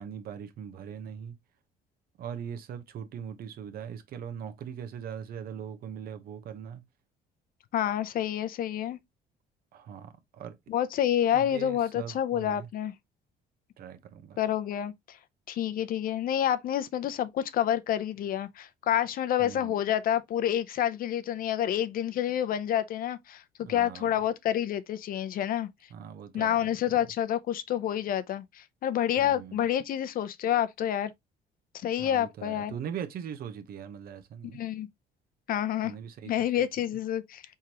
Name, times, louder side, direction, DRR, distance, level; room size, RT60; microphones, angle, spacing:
voice 1, 0.0-1.4 2.2-6.8 9.7-10.6 11.3-12.7 13.8-14.4 19.4-19.8 23.6-24.1 25.9-26.6 29.2-29.6 32.0-34.6 35.8-36.3 36.6-36.7, right 8 dB, 60° right, 1.0 m, -40 dB
voice 2, 7.7-9.0 10.7-12.9 14.4-15.2 15.5-23.4 23.7-25.7 26.3-31.1 31.7-32.7 34.5-34.9 35.5-35.9 36.2-37.4, left 10 dB, 60° left, 0.6 m, -28 dB
4.6 x 3.6 x 2.9 m
cardioid pair, 110°, 17 cm